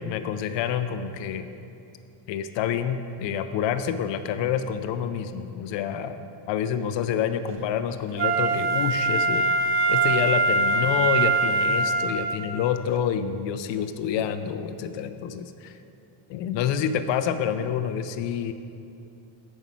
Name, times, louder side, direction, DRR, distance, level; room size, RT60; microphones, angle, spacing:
voice 1, 0.0-1.5 2.3-9.4 9.9-15.8 16.3-18.5, left 8 dB, 65° left, 10 dB, 0.5 m, -28 dB
Wind instrument woodwind instrument, 8.2-12.5 13.0-13.1, right 3 dB, 30° right, 0.5 m, -23 dB
7.0 x 5.4 x 7.3 m, 2.6 s
cardioid pair, 180°, 48 cm